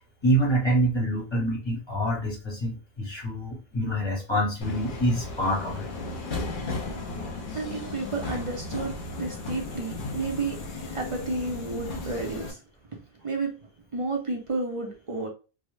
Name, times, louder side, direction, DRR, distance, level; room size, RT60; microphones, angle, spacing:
voice 1, 0.2-5.9, right 1 dB, 30° left, -2 dB, 0.8 m, -26 dB
Subway metro underground, 4.6-12.5, left 2 dB, 60° left, 0.7 m, -35 dB
voice 2, 7.5-10.6 10.9-12.6 13.2-13.5 13.9-15.3, right 3 dB, 40° right, 1 dB, 0.5 m, -31 dB
2.6 x 2.0 x 3.1 m, 0.32 s
omnidirectional pair, 1.0 m